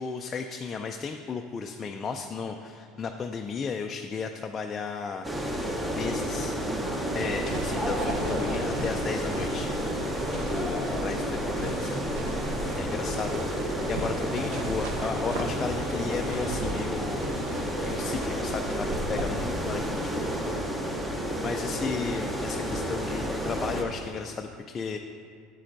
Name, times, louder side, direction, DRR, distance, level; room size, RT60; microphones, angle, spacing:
voice 1, 0.0-5.3 5.9-6.6 7.1-9.8 10.3-12.3 12.7-13.6 13.9-17.4 17.8-20.5 20.8-25.0, left 5 dB, 25° left, 4 dB, 0.3 m, -34 dB
sound 1, 5.2-23.8, equal, 10° right, 0.8 m, -31 dB
sound 2, 7.2-20.6, right 2 dB, 85° right, 0.8 m, -38 dB
8.5 x 8.2 x 2.6 m, 2.2 s
supercardioid pair, 130°, 0 cm